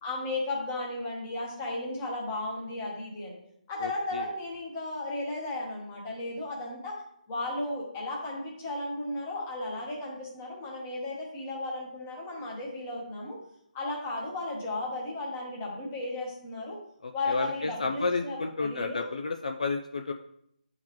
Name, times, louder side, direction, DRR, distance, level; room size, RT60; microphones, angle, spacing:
voice 1, 0.0-3.4 3.7-7.0 7.3-13.4 13.7-16.8 17.1-19.1, left 2 dB, 15° left, -3 dB, 1.0 m, -35 dB
voice 2, 3.8-4.3 17.0-20.1, left 3 dB, 55° left, 5 dB, 0.4 m, -31 dB
8.7 x 3.9 x 3.0 m, 0.73 s
hypercardioid pair, 175°, 5 cm